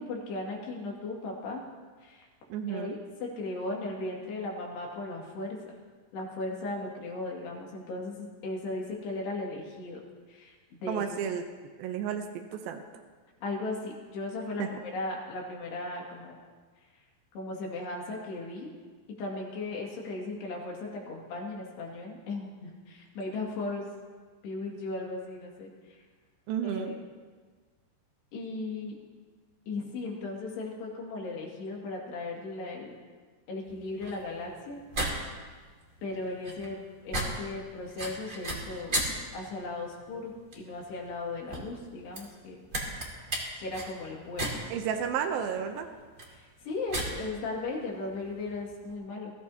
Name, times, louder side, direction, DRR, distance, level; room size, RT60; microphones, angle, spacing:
voice 1, 0.0-1.6 2.0-2.3 2.7-5.7 6.1-10.0 10.3-10.5 10.8-11.0 13.4-16.4 17.3-18.7 19.2-23.9 24.4-25.7 26.6-26.9 28.3-29.0 29.7-32.9 33.5-34.8 36.0-36.8 37.0-39.0 39.3-42.6 43.6-44.6 46.3-49.3, left 2 dB, 70° left, -2 dB, 4.3 m, -37 dB
voice 2, 2.5-3.0 10.9-11.4 11.8-12.8 14.6-14.7 26.5-26.9 44.7-45.9, right 8 dB, 80° right, 5 dB, 2.1 m, -32 dB
sound 1, 33.7-48.9, right 1 dB, 30° right, 1.5 m, -37 dB
22.5 x 15.0 x 2.8 m, 1.5 s
omnidirectional pair, 5.1 m